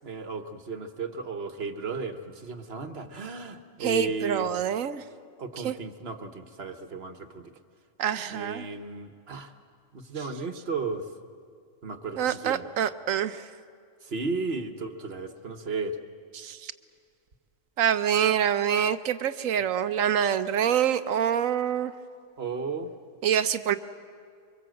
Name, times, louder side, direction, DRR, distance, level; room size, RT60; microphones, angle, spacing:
voice 1, 0.0-4.5 5.4-7.4 8.3-9.5 9.9-11.0 11.8-12.6 14.0-16.0 22.4-22.9, right 4 dB, 50° right, 8 dB, 1.5 m, -34 dB
voice 2, 3.8-5.0 5.6-5.8 8.0-8.7 12.2-13.4 16.3-16.7 17.8-21.9 23.2-23.8, right 9 dB, 90° right, 11 dB, 1.2 m, -26 dB
25.0 x 24.0 x 7.8 m, 2.2 s
omnidirectional pair, 1.3 m